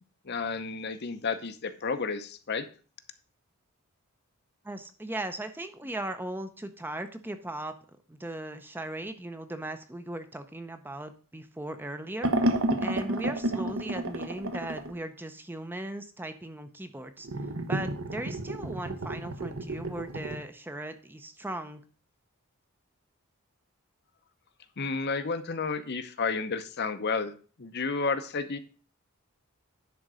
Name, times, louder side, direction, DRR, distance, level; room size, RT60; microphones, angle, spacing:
voice 1, 0.2-2.7 24.8-27.3 27.6-28.6, left 4 dB, 50° left, 10 dB, 0.7 m, -31 dB
voice 2, 4.6-7.7 8.1-12.3 12.8-17.3 17.7-21.8, right 1 dB, 10° right, 8 dB, 0.6 m, -38 dB
sound 1, 12.2-14.9 17.2-20.4, right 1 dB, 65° right, 1.0 m, -31 dB
10.5 x 3.8 x 6.2 m, 0.39 s
head